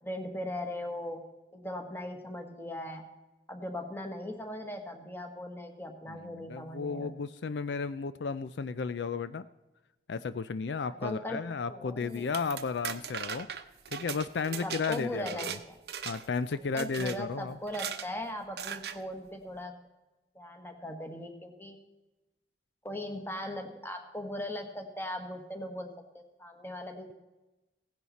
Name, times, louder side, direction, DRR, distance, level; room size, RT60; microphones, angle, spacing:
voice 1, 0.0-1.2 1.5-3.0 3.5-7.1 10.9-11.4 11.7-12.3 14.6-15.8 16.7-19.7 20.3-21.8 22.8-27.1, left 1 dB, 15° left, 5 dB, 1.4 m, -39 dB
voice 2, 6.1-9.5 10.1-13.5 13.9-15.6 16.0-17.6, left 5 dB, 80° left, 14 dB, 0.5 m, -34 dB
sound 1, 12.1-15.6 15.9-16.4 16.8-17.2 17.7-18.1 18.6-19.0, right 8 dB, 65° right, 0.8 m, -38 dB
16.5 x 10.5 x 4.1 m, 1.1 s
head